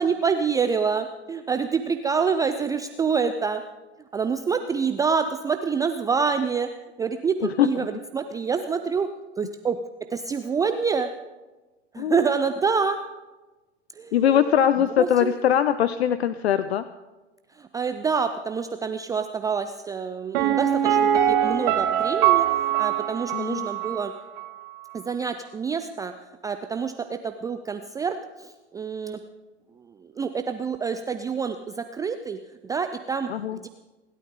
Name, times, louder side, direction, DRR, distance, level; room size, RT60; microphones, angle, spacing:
voice 1, 0.0-3.6 4.1-6.7 7.0-9.1 9.4-9.8 10.1-11.1 11.9-13.0 14.0-14.5 15.0-15.4 17.6-24.1 24.9-26.1 26.4-29.2 30.0-33.7, right 5 dB, 10° right, 8 dB, 0.5 m, -27 dB
voice 2, 14.1-16.8 23.3-23.7 33.3-33.6, left 10 dB, 65° left, 14 dB, 0.7 m, -21 dB
Piano, 20.3-24.1 24.4-24.5, right 10 dB, 50° right, 1.9 m, -22 dB
27.5 x 12.0 x 3.8 m, 1.2 s
figure-of-eight pair, 95°, 34 cm